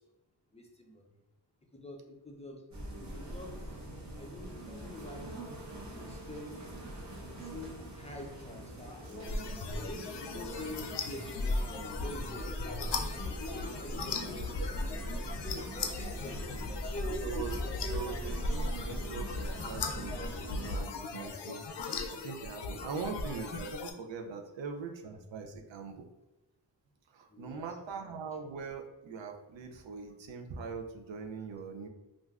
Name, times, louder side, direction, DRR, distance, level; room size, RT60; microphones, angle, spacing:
voice 1, 0.5-1.0 1.7-2.6 3.0-3.5 4.1-5.4 5.9-6.6 7.4-9.4 9.7-13.4 13.8-17.6 17.8-18.0 27.3-27.8, left 1 dB, 15° left, 0 dB, 0.4 m, -46 dB
sound 1, 2.7-20.8, right 1 dB, 40° right, 0.8 m, -42 dB
sound 2, 9.2-23.9, left 3 dB, 70° left, 0.5 m, -37 dB
voice 2, 14.1-14.8 17.2-17.6 17.9-21.6 22.1-26.0 27.1-31.9, right 5 dB, 85° right, 3 dB, 0.5 m, -42 dB
3.2 x 2.5 x 2.3 m, 1.0 s
wide cardioid pair, 90°, 44 cm